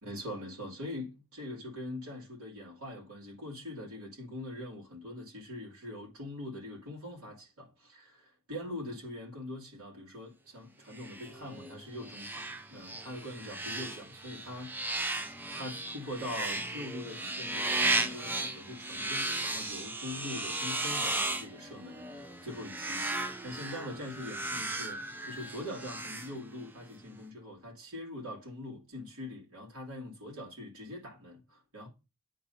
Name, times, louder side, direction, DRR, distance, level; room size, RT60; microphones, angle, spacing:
voice 1, 0.0-14.7 15.5-31.9, left 1 dB, 75° right, 2.8 m, -43 dB
sound 1, 10.9-26.9, right 2 dB, 10° right, 0.5 m, -36 dB
9.6 x 3.9 x 2.8 m
head